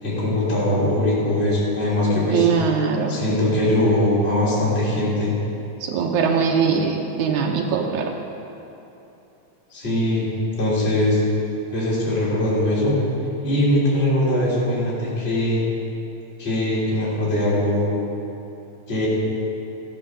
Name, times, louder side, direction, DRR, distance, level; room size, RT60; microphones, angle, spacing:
voice 1, 0.0-2.5 3.1-5.3 9.7-10.3 10.6-11.2 11.7-13.0 13.4-15.6 16.4-17.9 18.9-19.1, left 1 dB, 20° left, -8 dB, 3.2 m, -21 dB
voice 2, 2.3-3.2 5.8-8.1, right 6 dB, 85° right, 0 dB, 2.3 m, -21 dB
14.0 x 7.2 x 6.6 m, 2.9 s
omnidirectional pair, 3.4 m